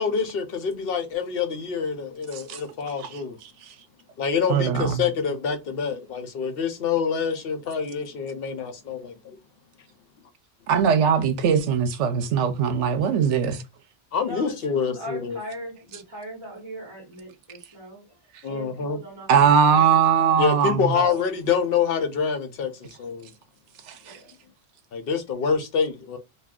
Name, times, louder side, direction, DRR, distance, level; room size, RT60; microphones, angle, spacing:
voice 1, 0.0-3.4 4.2-9.4 14.1-15.4 18.4-19.0 20.4-23.3 24.9-26.2, left 6 dB, 65° left, 0.7 m, -26 dB
voice 2, 4.5-5.0 10.7-13.6 19.3-20.9 24.1-24.2, right 7 dB, 85° right, 0.9 m, -20 dB
voice 3, 14.2-18.2 18.4-20.4 20.9-21.2 24.0-24.3, right 1 dB, 25° right, 1.1 m, -39 dB
2.3 x 2.3 x 3.5 m
omnidirectional pair, 1.2 m